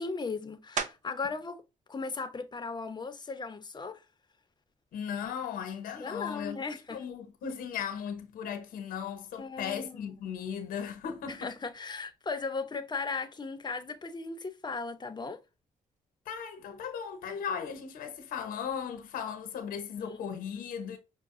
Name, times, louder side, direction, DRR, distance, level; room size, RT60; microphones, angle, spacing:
voice 1, 0.0-1.6 1.9-4.0 6.0-7.0 9.4-10.1 11.3-15.4 20.0-20.2 20.5-20.6, left 4 dB, 30° left, 0.9 m, -37 dB
sound 1, 0.8-1.4 1.9-6.3 6.9-12.0 12.3-18.0, right 6 dB, 60° right, 0.7 m, -46 dB
voice 2, 4.9-11.5 16.3-21.0, left 7 dB, 90° left, 1.0 m, -37 dB
5.8 x 2.3 x 2.6 m
supercardioid pair, 65°, 14 cm